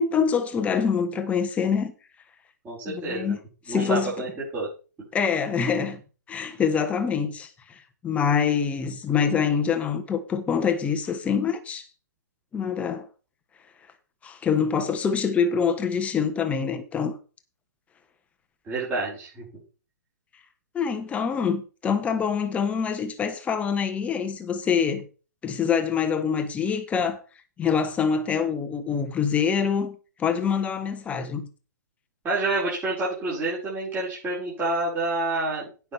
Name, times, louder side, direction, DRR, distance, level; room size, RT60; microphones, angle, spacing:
voice 1, 0.0-1.9 2.9-3.4 3.7-4.1 5.1-6.0 6.3-11.9 12.5-13.1 14.2-17.2 20.7-25.0 25.4-27.2 27.6-31.5, left 6 dB, 15° left, 1.2 m, -25 dB
voice 2, 2.6-3.3 3.7-4.3 4.5-4.7 18.7-19.4 32.2-35.7, right 2 dB, 20° right, 5.2 m, -28 dB
17.0 x 6.0 x 3.5 m
figure-of-eight pair, 120°, 10 cm